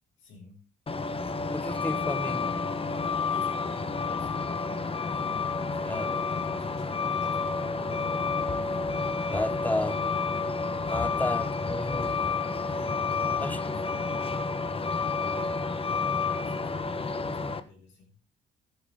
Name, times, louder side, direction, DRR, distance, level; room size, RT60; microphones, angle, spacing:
voice 1, 0.2-0.6 1.2-2.0 3.3-8.2 8.6-9.7 12.7-15.2 15.8-18.1, left 3 dB, 85° left, 7.6 m, -51 dB
Truck, 0.9-17.6, left 4 dB, 30° left, 1.2 m, -30 dB
voice 2, 1.5-2.5 5.8-6.1 9.3-10.0 10.9-12.3 13.4-13.6, left 1 dB, 10° left, 0.8 m, -32 dB
14.0 x 11.0 x 3.8 m
cardioid pair, 90°, 20 cm